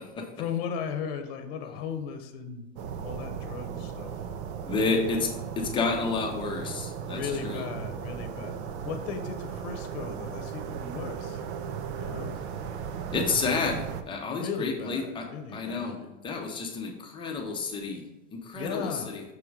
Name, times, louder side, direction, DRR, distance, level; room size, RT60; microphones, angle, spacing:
voice 1, 0.4-2.7 3.0-4.1 4.7-5.2 7.1-8.5 8.8-11.4 12.0-12.4 14.3-16.0 18.5-19.2, left 6 dB, 50° left, 6 dB, 0.9 m, -36 dB
sound 1, 2.8-14.0, right 7 dB, 60° right, 0.7 m, -36 dB
voice 2, 4.7-7.7 13.1-15.3 15.5-18.0 18.3-19.2, left 4 dB, 15° left, 1 dB, 0.7 m, -30 dB
6.3 x 3.7 x 4.6 m, 0.99 s
supercardioid pair, 155°, 38 cm